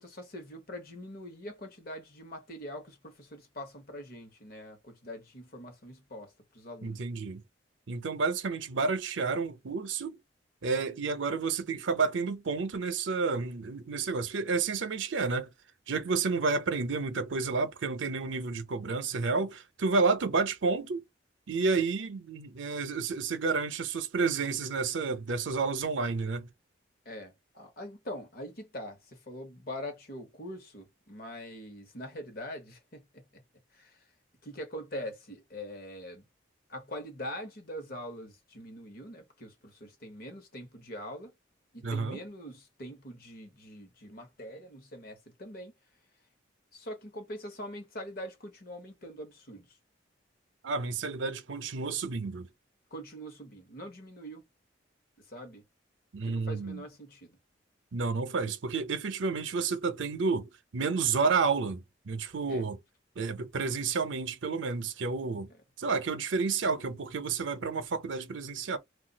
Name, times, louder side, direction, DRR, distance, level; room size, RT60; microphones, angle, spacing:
voice 1, 0.0-7.0 27.0-33.4 33.7-34.1 34.4-36.2 36.7-41.3 41.7-45.7 46.7-49.8 52.9-54.5 55.2-55.6 56.2-57.4 62.5-62.6, equal, 50° left, 1.0 m, -43 dB
voice 2, 6.8-7.4 7.9-10.2 10.6-15.5 15.9-21.0 21.5-26.5 41.8-42.2 50.6-52.5 56.1-56.8 57.9-62.8 63.2-65.5 65.8-68.8, right 4 dB, 75° right, 0.6 m, -30 dB
2.3 x 2.3 x 3.8 m
head